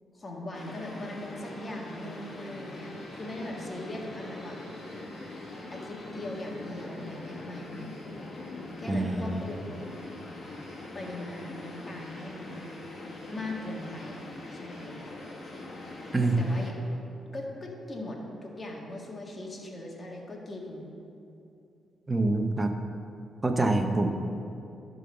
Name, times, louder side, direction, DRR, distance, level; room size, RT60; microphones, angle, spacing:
voice 1, 0.1-4.6 5.7-8.0 8.8-9.8 10.9-12.9 13.3-14.2 14.5-15.0 16.4-16.8 17.3-20.9, left 1 dB, 35° left, -1 dB, 1.8 m, -40 dB
sound 1, 0.5-16.7, left 2 dB, 50° left, 1.8 m, -42 dB
voice 2, 8.9-9.4 16.1-16.4 22.1-22.7 23.4-24.1, right 2 dB, 20° right, 5 dB, 0.9 m, -25 dB
12.0 x 3.9 x 6.7 m, 2.8 s
cardioid pair, 75°, 0 cm